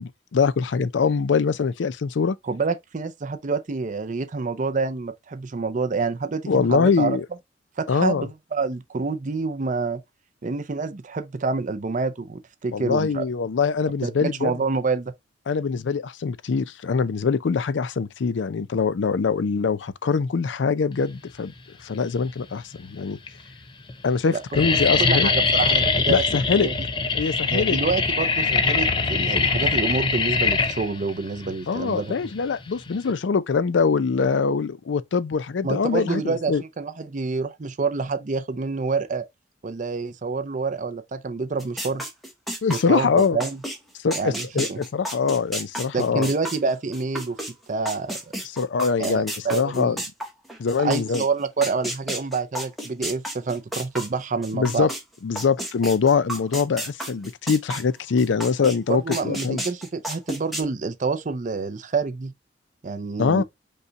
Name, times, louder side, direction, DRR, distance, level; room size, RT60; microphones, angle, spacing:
voice 1, 0.0-2.4 6.5-7.3 7.9-8.3 12.7-14.5 15.5-21.5 21.8-23.2 24.0-25.3 26.1-26.7 27.1-27.8 31.7-36.6 42.6-43.4 44.0-46.3 48.6-50.0 50.6-51.2 54.5-54.9 55.2-59.6 63.2-63.4, left 5 dB, 90° left, 0.5 m, -23 dB
voice 2, 2.4-7.2 7.8-10.0 10.4-13.2 14.0-15.1 24.3-26.2 26.6-26.7 27.5-32.3 35.6-39.2 39.6-42.0 42.7-43.6 44.1-44.8 45.9-47.4 47.7-48.2 49.0-50.0 50.8-54.9 58.9-62.3 62.8-63.4, right 4 dB, 45° right, 0.5 m, -27 dB
sound 1, 21.9-22.5 23.2-23.3 23.5-23.9 24.2-33.1, left 4 dB, 25° left, 0.6 m, -23 dB
sound 2, 41.6-47.5 47.9-55.0 55.4-58.8 59.1-60.6, right 1 dB, ahead, 1.1 m, -32 dB
5.4 x 2.3 x 3.9 m
head